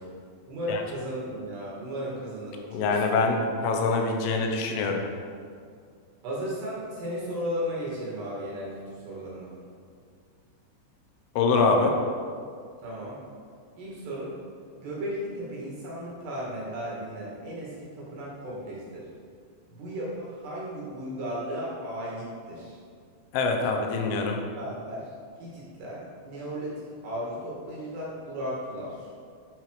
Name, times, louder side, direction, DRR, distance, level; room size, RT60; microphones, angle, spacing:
voice 1, 0.5-3.2 6.2-9.5 12.8-13.2 13.8-14.4 14.8-19.1 19.7-22.8 24.6-25.1 25.4-29.1, equal, 65° right, -6 dB, 4.4 m, -35 dB
voice 2, 2.7-3.4 3.6-5.0 11.4-11.9 23.3-24.4, left 4 dB, 85° left, 3 dB, 3.7 m, -24 dB
11.0 x 8.3 x 5.1 m, 2.2 s
omnidirectional pair, 5.4 m